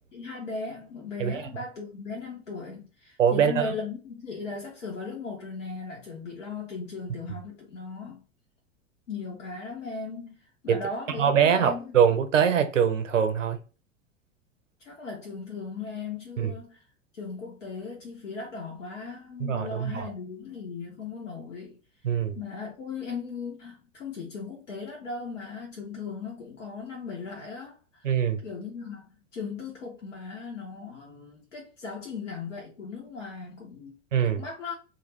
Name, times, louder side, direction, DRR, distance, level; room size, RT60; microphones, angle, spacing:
voice 1, 0.1-8.2 9.1-12.0 14.8-16.8 17.1-21.8 22.3-28.1 28.4-29.0 29.3-34.0 34.2-34.7, left 4 dB, 75° left, 0.9 m, -37 dB
voice 2, 3.2-3.7 10.7-10.8 11.2-13.6 16.4-16.5 19.4-20.1 22.0-22.4 28.0-28.4 34.1-34.4, right 8 dB, 80° right, 0.6 m, -23 dB
2.5 x 2.4 x 3.1 m
figure-of-eight pair, 90°, 37 cm